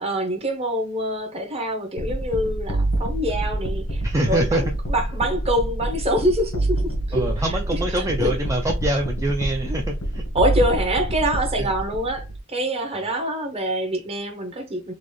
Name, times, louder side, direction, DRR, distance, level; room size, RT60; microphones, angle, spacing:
voice 1, 0.0-7.2 7.7-8.3 10.3-14.9, equal, 30° right, 0.9 m, -25 dB
sound 1, 2.0-12.4, right 1 dB, 80° left, 1.1 m, -27 dB
voice 2, 4.0-4.6 7.1-10.2 11.6-11.7, right 1 dB, 15° right, 0.4 m, -24 dB
4.0 x 2.4 x 3.1 m
head